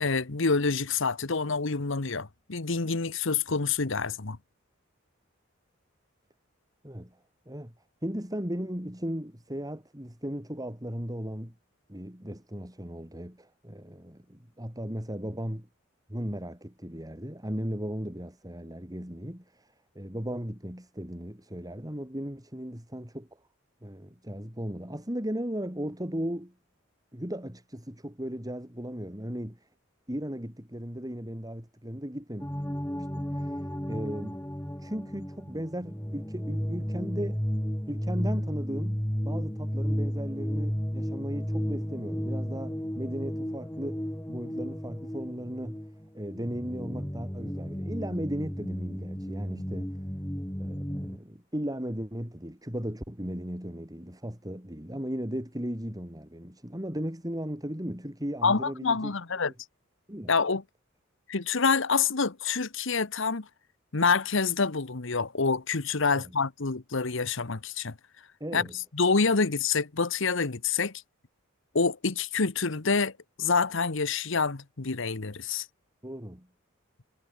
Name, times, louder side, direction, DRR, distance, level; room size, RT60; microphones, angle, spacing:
voice 1, 0.0-4.4 58.4-59.5 60.3-60.6 61.3-63.5 63.9-67.9 68.5-68.7 68.9-70.9 71.7-73.1 73.4-75.7, left 4 dB, 65° left, 1.3 m, -27 dB
voice 2, 8.0-11.5 11.9-15.7 16.1-19.7 20.0-23.3 23.8-26.5 27.1-29.6 30.1-32.5 33.0-34.4 34.8-37.4 37.9-44.0 44.3-45.8 46.1-49.9 50.6-59.1 59.4-59.5 60.1-60.3 66.0-66.2 68.4-68.7 76.0-76.5, equal, 20° right, 5.3 m, -36 dB
sound 1, 32.4-51.2, equal, 10° left, 2.9 m, -33 dB
head